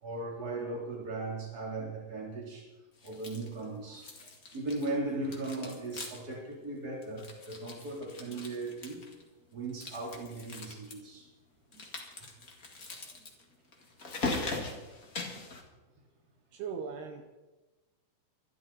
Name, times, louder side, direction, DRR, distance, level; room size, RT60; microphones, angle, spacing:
voice 1, 0.0-2.7 3.0-4.1 4.5-9.0 9.5-11.2, right 2 dB, 25° right, -2 dB, 3.7 m, -37 dB
sound 1, 3.0-3.6 3.9-5.0 5.2-6.4 6.6-6.7 7.0-9.2 9.7-10.9 11.7-15.6, left 3 dB, 40° left, 1.2 m, -40 dB
voice 2, 16.5-17.2, right 6 dB, 75° right, 3 dB, 3.0 m, -38 dB
22.5 x 12.5 x 4.2 m, 1.1 s
omnidirectional pair, 4.9 m